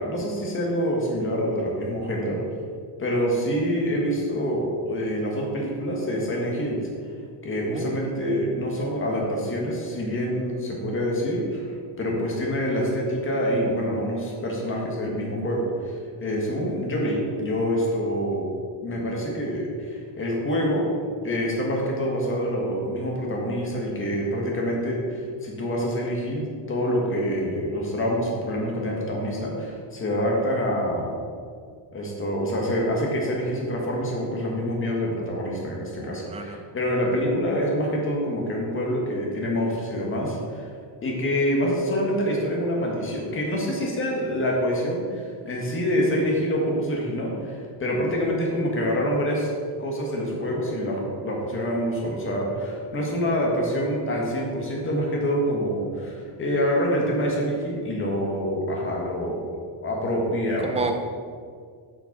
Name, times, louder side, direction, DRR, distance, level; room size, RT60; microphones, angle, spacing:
voice 1, 0.0-2.4 3.0-6.9 7.4-11.7 12.0-18.4 18.8-20.9 21.2-31.2 31.9-40.7 41.0-49.5 49.8-60.8, equal, 25° left, -2 dB, 1.7 m, -26 dB
voice 2, 7.7-8.1 36.0-36.6 60.6-60.9, right 3 dB, 15° right, 5 dB, 0.5 m, -31 dB
7.0 x 5.8 x 5.4 m, 2.1 s
cardioid pair, 155°, 50 cm